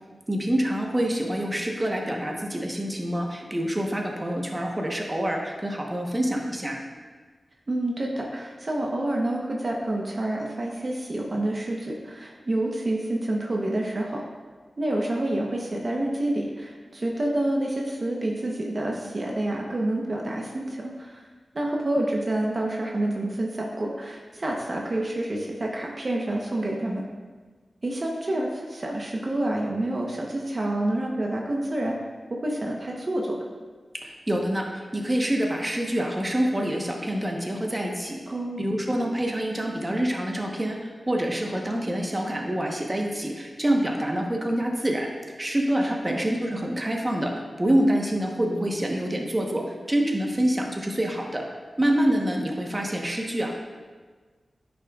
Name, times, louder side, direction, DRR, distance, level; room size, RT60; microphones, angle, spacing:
voice 1, 0.3-6.8 34.0-38.2 38.6-45.1 45.4-51.4 51.8-53.5, right 1 dB, 25° right, 0 dB, 1.1 m, -26 dB
voice 2, 7.7-14.2 14.8-21.2 21.5-27.0 27.8-31.9 32.3-33.4 38.3-38.6 46.1-46.2, right 1 dB, 50° right, -1 dB, 0.9 m, -28 dB
10.0 x 6.1 x 2.4 m, 1.4 s
cardioid pair, 55°, 0 cm